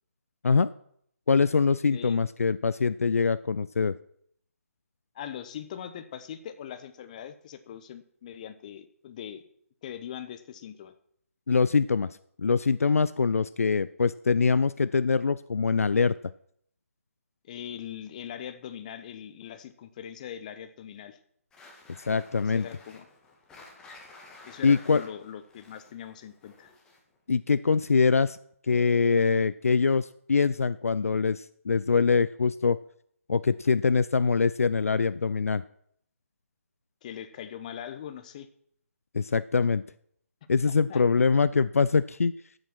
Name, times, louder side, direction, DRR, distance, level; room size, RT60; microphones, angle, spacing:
voice 1, 1.3-4.0 11.5-12.1 12.4-16.2 22.1-22.7 24.6-25.0 27.3-28.4 28.7-32.8 33.3-35.6 39.1-39.8 40.5-42.3, left 5 dB, 70° left, 16 dB, 0.4 m, -23 dB
voice 2, 1.9-2.2 5.1-9.4 9.8-10.9 17.4-21.2 22.4-23.1 24.4-26.7 37.0-38.5 40.7-41.0, left 9 dB, 30° left, 11 dB, 0.9 m, -41 dB
sound 1, 21.5-27.2, left 3 dB, 10° left, 1.7 m, -52 dB
11.5 x 7.8 x 6.1 m, 0.68 s
figure-of-eight pair, 150°, 8 cm